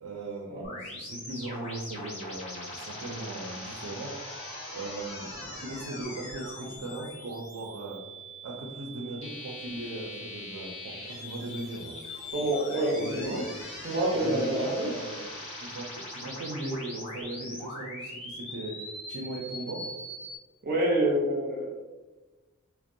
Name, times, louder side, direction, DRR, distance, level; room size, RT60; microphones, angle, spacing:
voice 1, 0.0-4.2 4.7-8.0 8.4-12.0 12.9-13.5 14.1-15.3 15.6-19.8, right 2 dB, 85° right, -2 dB, 0.4 m, -38 dB
sound 1, 0.6-20.4, left 1 dB, 30° left, 0.6 m, -41 dB
voice 2, 12.3-13.4 13.8-14.9 20.6-21.8, right 1 dB, 45° right, -3 dB, 0.6 m, -27 dB
2.5 x 2.0 x 2.6 m, 1.2 s
head